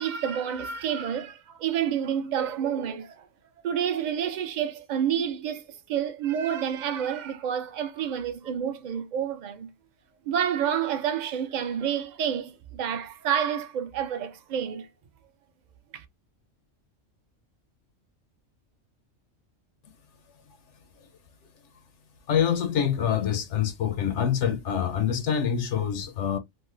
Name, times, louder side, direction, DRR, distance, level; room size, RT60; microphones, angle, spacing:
voice 1, 0.0-3.3 3.6-9.7 10.3-14.9 15.9-16.0, right 9 dB, 50° right, 0.5 m, -29 dB
voice 2, 22.3-26.4, left 8 dB, 70° left, 0.9 m, -25 dB
3.1 x 2.1 x 3.1 m
omnidirectional pair, 1.3 m